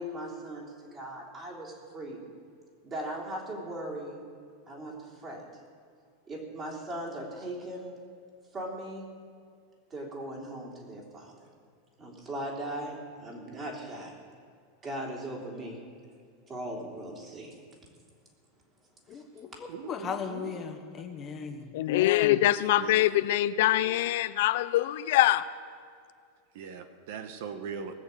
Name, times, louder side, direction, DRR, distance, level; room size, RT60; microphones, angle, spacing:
voice 1, 0.0-2.2 2.8-4.2 4.7-5.5 6.3-7.9 8.5-9.1 9.9-11.5 12.0-14.1 14.8-15.8 16.5-17.5 19.1-19.2 19.5-19.6, right 1 dB, 25° right, -1 dB, 3.3 m, -39 dB
voice 2, 19.1-21.6, left 6 dB, 25° left, 5 dB, 1.1 m, -37 dB
voice 3, 19.7-20.5 22.5-23.0 26.5-27.9, right 6 dB, 65° right, 9 dB, 1.1 m, -40 dB
voice 4, 21.7-25.4, left 14 dB, 65° left, 14 dB, 0.5 m, -24 dB
19.0 x 6.9 x 8.4 m, 2.2 s
supercardioid pair, 145°, 0 cm